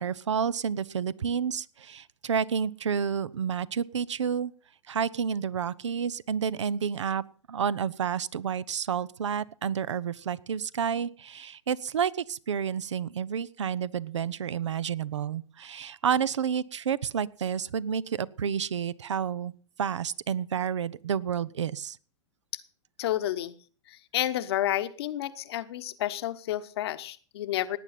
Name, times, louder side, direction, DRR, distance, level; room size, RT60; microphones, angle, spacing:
voice 1, 0.0-4.5 4.9-7.2 7.5-22.0, right 7 dB, 70° right, 20 dB, 0.7 m, -30 dB
voice 2, 23.0-23.5 23.9-27.8, left 13 dB, 55° left, 12 dB, 1.1 m, -30 dB
18.0 x 9.4 x 5.8 m, 0.43 s
figure-of-eight pair, 100°, 16 cm